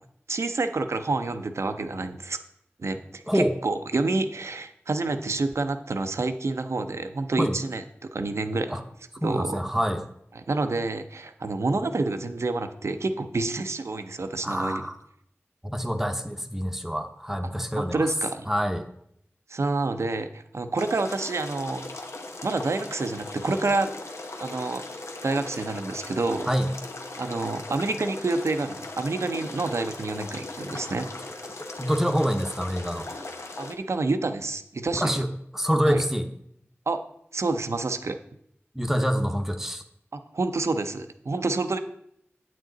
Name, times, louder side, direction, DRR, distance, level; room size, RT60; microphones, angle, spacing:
voice 1, 0.3-2.4 2.8-8.8 9.2-9.6 10.5-14.8 17.8-18.5 19.5-21.9 22.4-23.9 24.4-24.8 25.2-26.5 27.2-31.1 33.6-35.2 35.9-36.0 36.9-37.0 37.3-38.2 40.1-41.8, right 3 dB, 80° right, 8 dB, 0.7 m, -28 dB
voice 2, 3.3-3.6 7.4-7.6 8.7-8.8 9.2-10.0 14.4-15.0 15.6-18.1 18.5-18.9 26.5-26.7 31.8-33.1 34.9-36.3 38.7-39.8, equal, 10° right, 6 dB, 0.8 m, -26 dB
sound 1, 20.8-33.7, left 2 dB, 90° left, 0.9 m, -39 dB
9.2 x 8.4 x 3.9 m, 0.73 s
wide cardioid pair, 60°, 5 cm